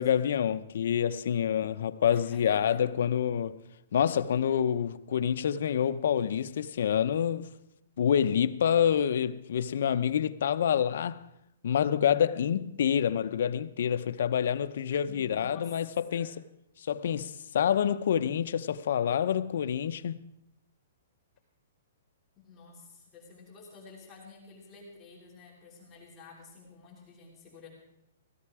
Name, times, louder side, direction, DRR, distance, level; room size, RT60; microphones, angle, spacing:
voice 1, 0.0-3.6 3.9-7.5 8.0-11.2 11.6-16.3 16.8-20.3, left 8 dB, 60° left, 0.7 m, -27 dB
voice 2, 2.1-2.8 15.0-15.7 16.1-16.3 22.4-27.7, left 4 dB, 15° left, 3.0 m, -51 dB
17.0 x 13.5 x 4.8 m
hypercardioid pair, 165°, 0 cm